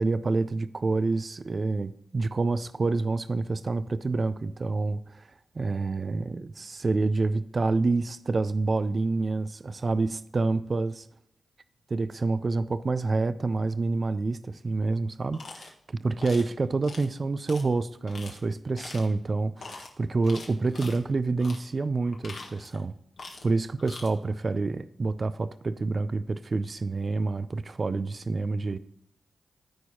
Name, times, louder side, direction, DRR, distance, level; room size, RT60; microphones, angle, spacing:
voice 1, 0.0-5.3 5.6-11.1 11.9-22.9 23.4-28.8, right 3 dB, 50° right, 0.4 m, -28 dB
sound 1, 15.3-15.7 16.2-16.5 16.8-17.1 17.5-17.6 18.1-18.4 18.8-19.1 19.6-19.9 20.2-21.0 21.4-21.6 22.1-22.8 23.2-23.5 23.8-24.1, left 3 dB, 70° left, 1.5 m, -43 dB
13.5 x 4.6 x 2.8 m
supercardioid pair, 45°, 0 cm